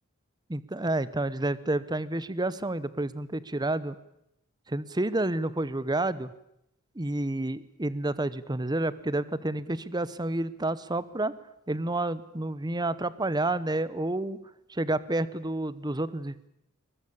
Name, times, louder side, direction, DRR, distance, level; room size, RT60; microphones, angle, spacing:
voice 1, 0.5-4.0 4.7-6.3 6.9-11.3 11.7-14.4 14.7-16.5, right 2 dB, 20° right, 17 dB, 0.9 m, -29 dB
23.0 x 20.5 x 8.6 m, 0.79 s
head